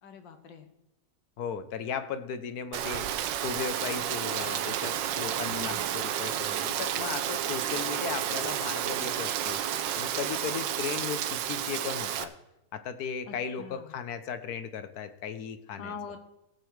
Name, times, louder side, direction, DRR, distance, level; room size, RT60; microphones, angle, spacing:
voice 1, 0.0-0.7 5.4-5.9 13.3-13.9 15.8-16.2, left 5 dB, 80° left, 7 dB, 1.9 m, -43 dB
voice 2, 1.4-3.1 3.4-12.3 12.7-15.9, left 7 dB, 60° left, 10 dB, 1.2 m, -36 dB
Rain, 2.7-12.2, right 10 dB, 80° right, 1.4 m, -31 dB
17.5 x 6.8 x 4.6 m, 0.89 s
omnidirectional pair, 2.0 m